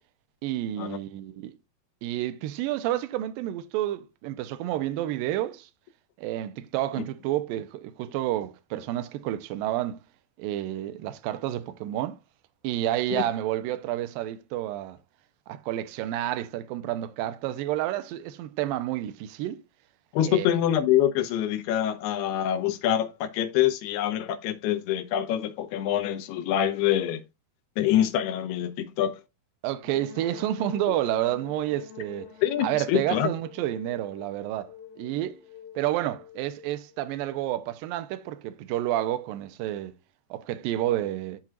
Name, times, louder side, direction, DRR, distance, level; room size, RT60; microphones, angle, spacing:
voice 1, 0.4-1.5 2.0-5.7 6.2-10.0 10.4-12.2 12.6-15.0 15.5-19.6 20.2-20.5 29.6-32.3 32.6-35.4 35.8-39.9 40.3-41.4, right 13 dB, 75° right, 2.3 m, -30 dB
voice 2, 20.1-27.2 27.8-29.2 32.4-33.3, left 11 dB, 90° left, 2.9 m, -25 dB
sound 1, 29.8-37.5, left 8 dB, 65° left, 2.0 m, -46 dB
12.0 x 4.4 x 2.5 m
omnidirectional pair, 4.5 m